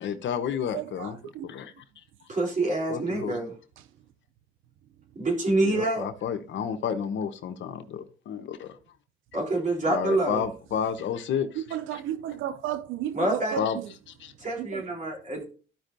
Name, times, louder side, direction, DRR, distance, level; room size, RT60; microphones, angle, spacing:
voice 1, 0.0-1.2 1.4-1.7 2.9-3.4 5.6-8.7 9.9-12.0 13.6-13.8 14.2-14.3, left 8 dB, 70° left, 1.0 m, -31 dB
voice 2, 0.7-1.5 11.6-13.6 14.6-14.8, right 11 dB, 85° right, 0.5 m, -33 dB
voice 3, 2.3-3.5 5.1-6.0 9.3-10.5 13.1-13.6 14.4-15.4, right 2 dB, 40° right, 3.4 m, -26 dB
13.5 x 5.4 x 2.6 m
cardioid pair, 90°, 20 cm